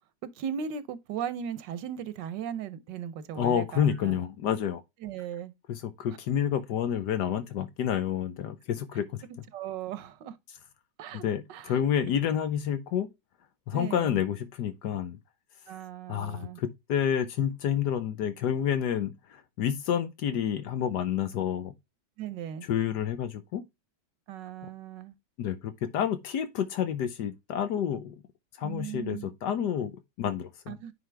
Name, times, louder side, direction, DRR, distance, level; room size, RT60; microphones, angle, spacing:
voice 1, 0.3-4.2 5.0-5.5 9.5-10.4 11.0-11.2 11.5-11.8 13.7-14.2 15.7-16.6 22.2-22.7 24.3-25.1 28.6-29.3 30.7-30.9, right 8 dB, 90° right, 1.5 m, -37 dB
voice 2, 3.4-4.8 5.7-9.2 11.2-13.1 13.7-15.2 16.1-21.7 22.7-23.6 25.4-28.2 28.6-30.8, left 9 dB, 75° left, 1.4 m, -29 dB
9.6 x 4.0 x 3.3 m
omnidirectional pair, 1.9 m